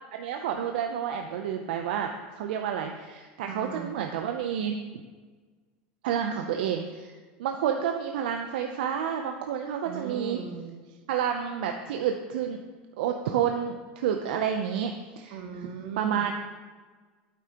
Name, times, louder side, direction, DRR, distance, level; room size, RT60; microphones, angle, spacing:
voice 1, 0.1-4.8 6.0-7.1 7.4-10.4 11.1-12.6 13.0-15.4 16.0-16.3, right 8 dB, 85° right, 5 dB, 0.5 m, -29 dB
voice 2, 3.4-4.0 9.8-11.0 15.3-16.3, right 6 dB, 70° right, 5 dB, 1.1 m, -38 dB
8.5 x 8.4 x 2.9 m, 1.4 s
supercardioid pair, 135°, 5 cm